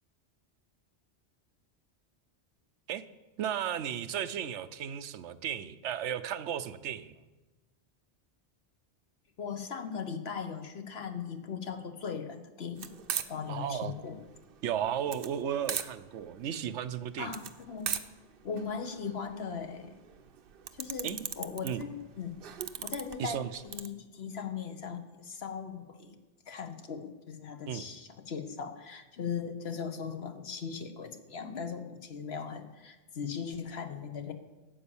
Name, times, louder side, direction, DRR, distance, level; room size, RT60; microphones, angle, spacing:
voice 1, 3.4-7.2 13.5-13.9 14.6-17.4 21.0-21.2 21.6-21.8 23.2-23.6 27.7-27.9, right 9 dB, 85° right, 13 dB, 1.0 m, -34 dB
voice 2, 9.4-12.9 13.3-14.2 17.2-17.9 18.4-19.9 20.7-22.4 22.8-26.2 26.5-34.3, left 6 dB, 60° left, 8 dB, 1.3 m, -39 dB
sound 1, 12.8-23.9, right 8 dB, 55° right, 0.8 m, -40 dB
12.5 x 8.6 x 7.1 m, 1.2 s
omnidirectional pair, 1.2 m